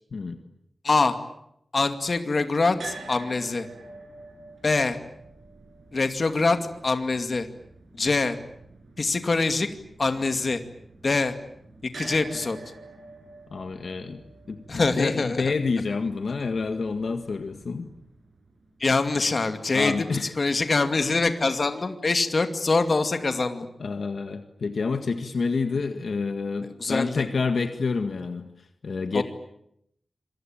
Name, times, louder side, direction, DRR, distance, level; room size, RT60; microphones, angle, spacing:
voice 1, 0.8-1.2 1.7-3.7 4.6-5.0 5.9-7.5 8.0-8.4 9.0-9.7 10.0-10.6 11.0-11.3 11.8-12.6 14.7-15.5 18.8-23.7 26.6-27.3 29.1-29.2, left 3 dB, 45° left, 8 dB, 2.4 m, -24 dB
sound 1, 2.8-18.9, right 3 dB, 70° right, 7.8 m, -47 dB
voice 2, 13.5-17.9 19.7-20.3 23.8-29.2, left 4 dB, 65° left, 7 dB, 1.8 m, -28 dB
27.5 x 23.5 x 8.9 m, 0.76 s
wide cardioid pair, 135°, 0 cm